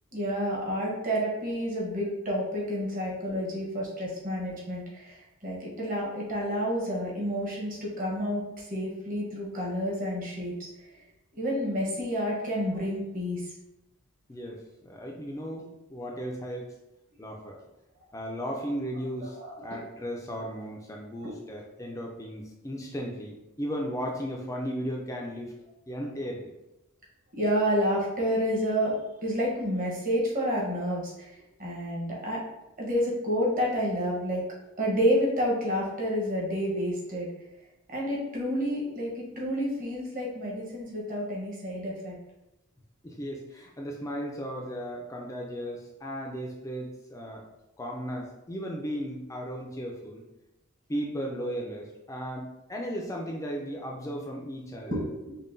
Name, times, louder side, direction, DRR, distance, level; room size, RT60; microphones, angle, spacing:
voice 1, 0.1-8.4 8.7-10.7 10.9-11.0 11.4-13.4 19.2-19.8 21.2-21.3 27.3-28.9 29.2-31.3 31.6-32.4 32.8-34.5 34.8-37.3 37.9-42.1 54.9-55.4, equal, 35° right, -4 dB, 0.9 m, -29 dB
voice 2, 14.3-16.8 17.2-17.6 18.1-25.5 25.9-26.5 43.0-47.5 47.8-50.3 50.9-55.0, equal, 15° left, 0 dB, 0.3 m, -36 dB
5.4 x 2.2 x 2.6 m, 0.95 s
head